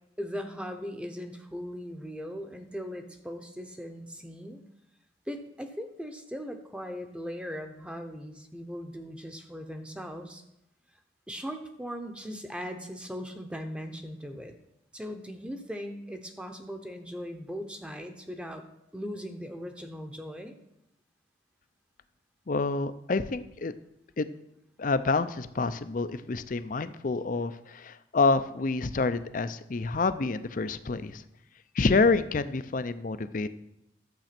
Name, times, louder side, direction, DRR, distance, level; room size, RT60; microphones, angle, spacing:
voice 1, 0.2-4.6 5.3-10.4 11.3-14.5 14.9-18.6 18.9-20.6, equal, 5° right, 5 dB, 0.9 m, -39 dB
voice 2, 22.5-23.7 24.2-24.3 24.8-31.2 31.8-33.5, left 3 dB, 45° left, 12 dB, 0.5 m, -28 dB
11.5 x 7.7 x 5.9 m, 0.84 s
head